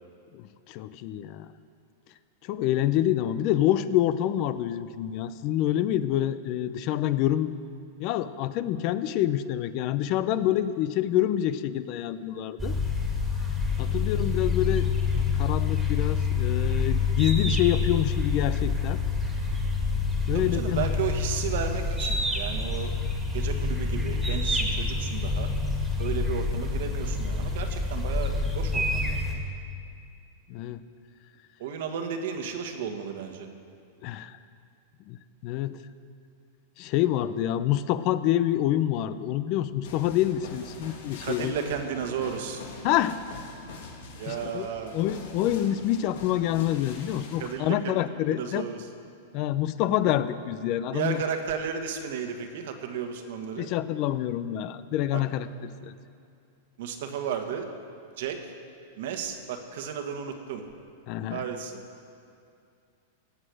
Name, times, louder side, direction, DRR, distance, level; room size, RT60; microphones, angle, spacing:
voice 1, 0.3-1.5 2.4-7.5 8.0-12.8 13.8-19.0 20.3-20.9 30.5-30.8 34.0-34.4 35.1-35.2 35.4-35.8 36.8-41.5 42.8-43.2 44.3-44.7 44.9-48.7 49.3-51.2 53.6-56.0 61.1-61.4, left 12 dB, 40° left, 14 dB, 0.5 m, -27 dB
sound 1, 12.6-29.4, left 4 dB, 5° right, 2.0 m, -27 dB
voice 2, 20.3-22.9 23.3-25.5 26.0-29.4 31.6-33.5 41.2-42.6 44.2-45.0 47.4-48.0 48.3-48.8 50.9-53.7 55.1-55.2 56.8-57.7 58.2-58.4 59.0-60.6 61.3-61.8, right 7 dB, 65° right, 5 dB, 1.5 m, -33 dB
sound 2, 39.8-47.6, left 3 dB, 75° left, 2.2 m, -44 dB
17.0 x 7.8 x 6.4 m, 2.5 s
supercardioid pair, 150°, 0 cm